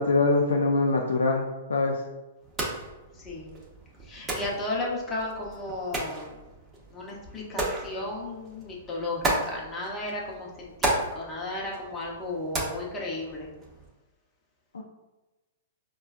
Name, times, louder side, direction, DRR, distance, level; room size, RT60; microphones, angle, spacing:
voice 1, 0.0-2.0 14.7-14.8, left 3 dB, 85° left, 0 dB, 0.3 m, -24 dB
sound 1, 2.4-13.9, right 1 dB, 20° right, 0.8 m, -35 dB
voice 2, 3.1-3.6 4.0-6.4 6.9-13.5, left 2 dB, 20° left, -4 dB, 0.8 m, -34 dB
4.3 x 2.2 x 2.4 m, 1.1 s
hypercardioid pair, 120°, 0 cm